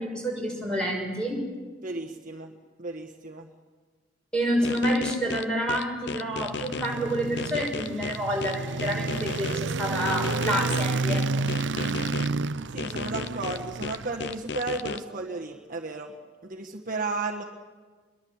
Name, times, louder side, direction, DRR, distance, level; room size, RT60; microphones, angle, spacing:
voice 1, 0.0-1.4 4.3-11.2, equal, 5° left, 0 dB, 6.2 m, -28 dB
voice 2, 1.8-2.5 2.8-3.5 12.7-16.1 16.4-17.4, right 3 dB, 45° right, 1 dB, 1.5 m, -34 dB
sound 1, 4.6-6.9 7.4-9.6 10.1-12.3 12.8-15.0, left 5 dB, 60° left, 0.8 m, -34 dB
sound 2, 6.1-14.5, right 3 dB, 75° right, 0.6 m, -30 dB
25.5 x 22.5 x 7.3 m, 1.4 s
head